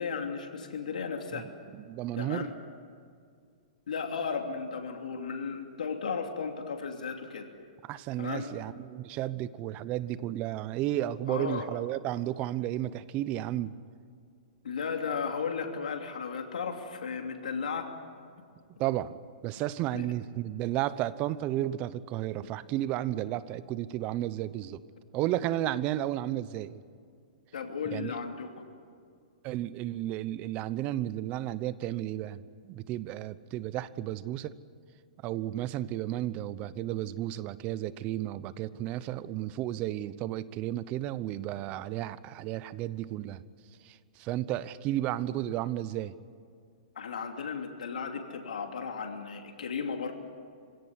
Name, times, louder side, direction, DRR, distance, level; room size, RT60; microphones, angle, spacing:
voice 1, 0.0-1.5 2.1-2.5 3.9-7.5 8.2-8.5 11.3-11.7 14.6-17.9 19.9-20.1 27.5-28.5 46.9-50.1, left 5 dB, 85° left, 4 dB, 2.9 m, -35 dB
voice 2, 1.7-2.5 7.8-13.7 18.8-19.1 19.4-24.8 25.1-26.8 27.9-28.1 29.4-34.5 35.2-43.4 43.8-46.1, right 13 dB, 30° right, 16 dB, 0.9 m, -33 dB
25.5 x 17.0 x 9.8 m, 2.2 s
hypercardioid pair, 145°, 4 cm